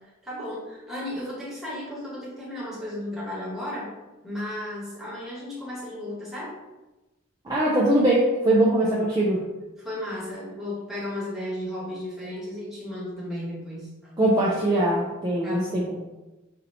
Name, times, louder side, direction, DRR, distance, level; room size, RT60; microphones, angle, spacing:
voice 1, 0.2-3.9 4.2-6.5 9.8-14.1 15.4-15.9, left 1 dB, ahead, -7 dB, 1.2 m, -34 dB
voice 2, 7.5-9.4 14.2-15.8, right 1 dB, 20° right, -6 dB, 0.5 m, -21 dB
4.3 x 2.7 x 2.7 m, 1.1 s
head